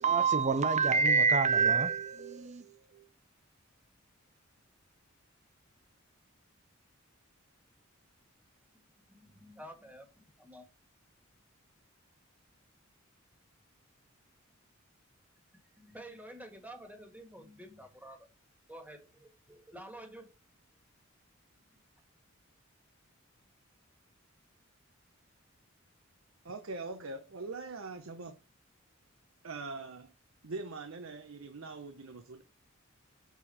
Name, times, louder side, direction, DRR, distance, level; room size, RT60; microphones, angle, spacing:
voice 1, 0.0-2.6, right 5 dB, 35° right, 0.7 m, -26 dB
voice 2, 9.2-10.6 15.5-18.3 18.7-20.3 21.7-21.8, right 1 dB, 10° right, 1.6 m, -50 dB
voice 3, 26.4-28.4 29.4-30.1 30.4-32.4, right 3 dB, 80° right, 0.8 m, -42 dB
7.0 x 4.4 x 4.2 m
head